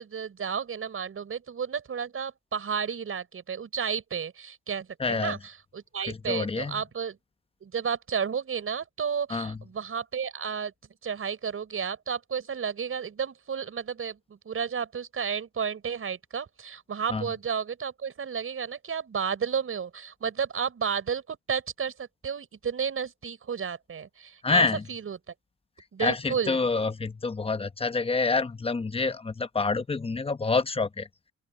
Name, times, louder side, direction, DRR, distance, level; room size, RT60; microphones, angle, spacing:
voice 1, 0.0-7.2 7.6-10.7 11.0-25.2 25.9-26.6, right 7 dB, 45° right, 5.2 m, -32 dB
voice 2, 5.0-5.4 6.1-6.8 9.3-9.6 17.1-17.3 24.4-24.8 26.0-31.1, left 4 dB, 20° left, 1.0 m, -27 dB
open air
cardioid pair, 90°, 30 cm